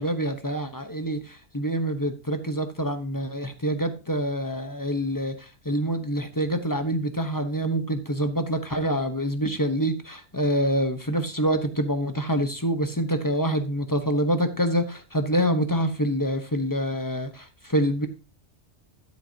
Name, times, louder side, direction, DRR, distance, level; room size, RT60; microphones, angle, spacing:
voice 1, 0.0-18.1, equal, 20° left, 7 dB, 0.9 m, -26 dB
12.5 x 7.9 x 2.8 m, 0.33 s
omnidirectional pair, 1.1 m